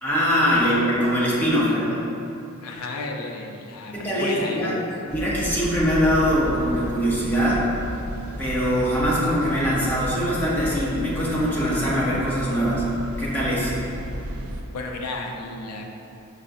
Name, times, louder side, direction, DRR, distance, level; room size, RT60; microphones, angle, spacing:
voice 1, 0.0-2.0 3.9-4.7 5.0-7.6 8.4-12.8 13.2-13.7, equal, 10° left, -8 dB, 0.7 m, -22 dB
voice 2, 2.6-4.9 14.7-15.8, left 2 dB, 85° left, 1 dB, 0.4 m, -33 dB
sound 1, 5.1-14.6, equal, 75° right, 0.4 m, -33 dB
5.6 x 2.3 x 2.5 m, 2.7 s
head